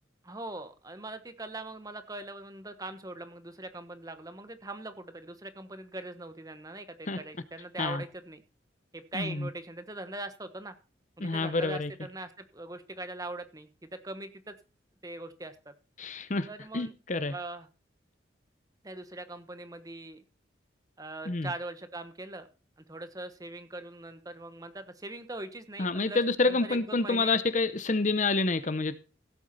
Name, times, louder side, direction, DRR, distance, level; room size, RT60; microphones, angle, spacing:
voice 1, 0.2-8.4 8.9-10.7 11.2-14.5 15.0-15.7 16.5-16.9 17.3-17.7 18.8-20.2 21.0-22.5 22.9-27.3, right 2 dB, 20° right, 1.2 m, -41 dB
voice 2, 9.1-9.5 11.2-11.9 16.0-16.5 16.7-17.3 21.3-21.5 25.8-29.0, left 3 dB, 40° left, 0.7 m, -28 dB
16.5 x 8.2 x 4.1 m
head